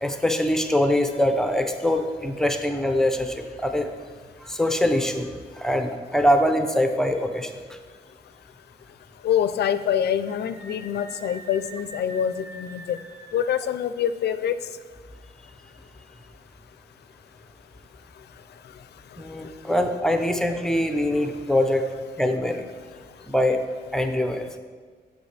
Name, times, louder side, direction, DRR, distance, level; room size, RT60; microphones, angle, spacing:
voice 1, 0.0-3.9 4.4-5.3 5.5-7.5 19.2-21.8 22.2-22.7 23.3-23.6 23.9-24.5, left 1 dB, 5° left, 6 dB, 0.5 m, -23 dB
voice 2, 9.2-13.0 13.3-14.5, left 9 dB, 70° left, 12 dB, 0.4 m, -25 dB
Screaming, 10.2-13.6, right 1 dB, 55° right, 1.3 m, -45 dB
8.0 x 6.4 x 3.3 m, 1.5 s
wide cardioid pair, 140°, 18 cm